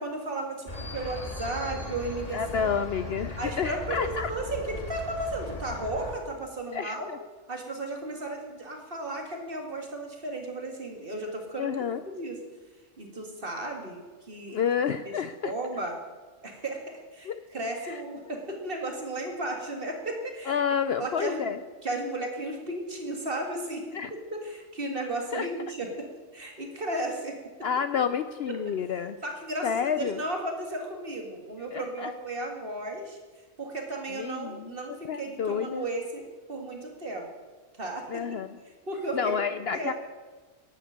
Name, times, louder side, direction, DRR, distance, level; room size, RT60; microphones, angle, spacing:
voice 1, 0.0-2.7 3.4-4.0 4.3-7.1 7.5-11.7 12.1-12.4 13.0-14.0 14.3-14.6 15.1-15.2 15.4-16.0 16.4-16.8 17.1-20.6 21.0-21.5 21.8-23.8 24.1-26.1 26.3-27.4 29.2-33.2 33.6-36.2 36.5-37.3 37.8-38.2 38.9-39.9, right 2 dB, 45° right, 2 dB, 2.2 m, -34 dB
sound 1, 0.7-6.2, left 2 dB, 30° left, 1.9 m, -38 dB
voice 2, 2.3-4.3 6.7-7.2 11.6-12.0 14.5-15.5 17.2-17.4 17.8-18.0 20.5-21.6 23.9-24.1 25.3-25.5 27.6-29.1 29.6-30.2 31.7-32.1 34.1-34.7 35.1-35.9 38.1-38.6 39.1-39.9, left 7 dB, 60° left, 11 dB, 0.7 m, -29 dB
11.0 x 8.7 x 8.5 m, 1.3 s
omnidirectional pair, 1.4 m